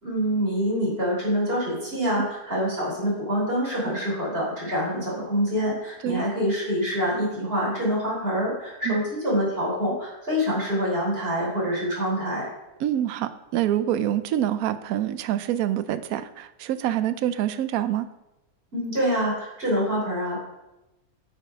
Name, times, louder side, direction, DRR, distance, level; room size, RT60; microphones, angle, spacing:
voice 1, 0.0-12.5 18.7-20.4, equal, 35° right, -5 dB, 3.7 m, -26 dB
voice 2, 12.8-18.1, right 11 dB, 70° right, 12 dB, 1.0 m, -26 dB
9.1 x 5.8 x 5.0 m, 0.96 s
omnidirectional pair, 1.7 m